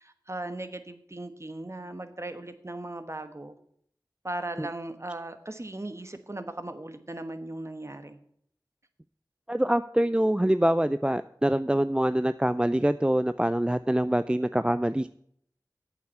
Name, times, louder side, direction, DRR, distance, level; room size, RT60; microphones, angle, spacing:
voice 1, 0.0-3.5 4.2-8.2, right 2 dB, 40° right, 9 dB, 1.2 m, -38 dB
voice 2, 9.5-15.1, right 1 dB, 15° right, 13 dB, 0.3 m, -25 dB
8.4 x 7.2 x 8.0 m, 0.66 s
wide cardioid pair, 45°, 8 cm